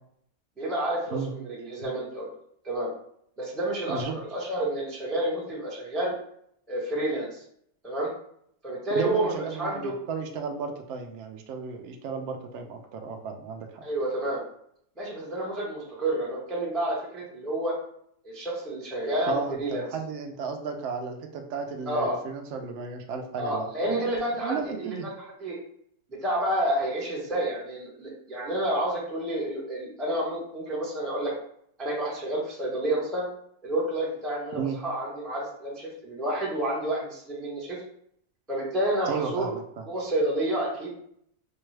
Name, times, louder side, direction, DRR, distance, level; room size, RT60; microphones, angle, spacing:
voice 1, 0.6-2.3 2.6-2.9 3.4-6.1 6.7-7.4 7.8-8.1 8.6-9.9 13.8-14.4 15.0-17.7 18.2-19.8 21.9-22.2 23.4-25.5 26.1-31.3 31.8-33.3 33.6-37.8 38.5-39.5 39.9-40.9, right 1 dB, ahead, -5 dB, 0.6 m, -29 dB
voice 2, 9.0-13.8 19.3-23.7 24.4-25.1 34.6-34.8 39.1-39.6, right 5 dB, 75° right, 4 dB, 0.6 m, -34 dB
4.5 x 2.3 x 3.2 m, 0.69 s
omnidirectional pair, 1.8 m